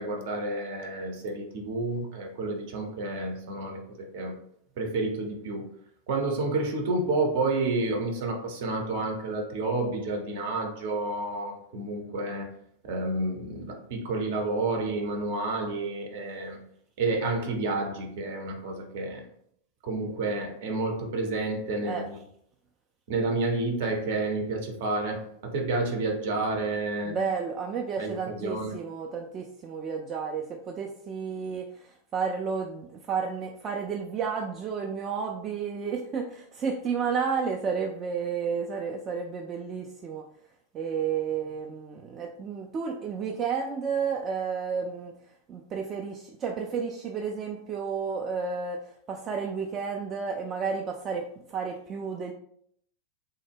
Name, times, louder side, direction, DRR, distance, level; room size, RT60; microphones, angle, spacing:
voice 1, 0.0-4.4 4.8-5.7 6.1-12.5 12.8-16.7 17.0-19.3 19.8-22.2 23.1-27.2 28.0-28.8, right 2 dB, 50° right, 2 dB, 0.7 m, -30 dB
voice 2, 27.0-40.2 40.7-45.1 45.5-52.3, right 6 dB, 30° right, 1 dB, 0.3 m, -32 dB
3.2 x 2.0 x 3.4 m, 0.68 s
figure-of-eight pair, 90°, 0 cm